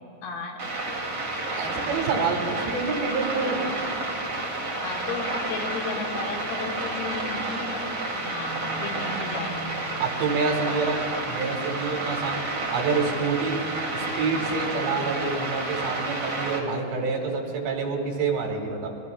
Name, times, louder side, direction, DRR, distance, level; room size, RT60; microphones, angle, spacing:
voice 1, 0.2-0.7 4.8-9.7 10.6-11.0 14.9-15.0, left 4 dB, 75° left, 0 dB, 3.9 m, -35 dB
sound 1, 0.6-16.6, right 2 dB, 40° right, 1.6 m, -30 dB
voice 2, 1.5-3.6 10.0-12.4 12.7-13.6 13.9-18.9, right 4 dB, 75° right, 1 dB, 4.0 m, -27 dB
26.0 x 22.5 x 2.4 m, 2.6 s
omnidirectional pair, 5.0 m